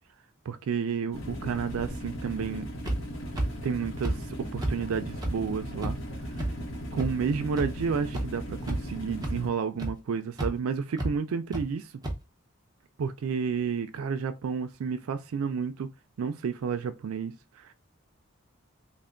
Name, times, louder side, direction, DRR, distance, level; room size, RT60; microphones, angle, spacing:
voice 1, 0.5-2.7 3.6-4.3 4.5-6.0 6.9-11.9 13.0-15.9 16.2-17.7, right 6 dB, 80° right, 0.4 m, -31 dB
sound 1, 1.1-9.5, equal, 60° left, 0.9 m, -38 dB
sound 2, 2.9-3.0 3.4-3.5 4.0-4.1 4.6-4.7 5.2-5.3 5.8-5.9 6.4-6.5 7.0-7.1 7.6-7.7 8.1-8.2 8.6-8.9 9.2-9.3 9.8-9.9 10.4-10.5 11.0-11.1 11.5-11.6 12.0-12.1, right 1 dB, 20° right, 0.7 m, -29 dB
3.3 x 2.1 x 3.7 m
head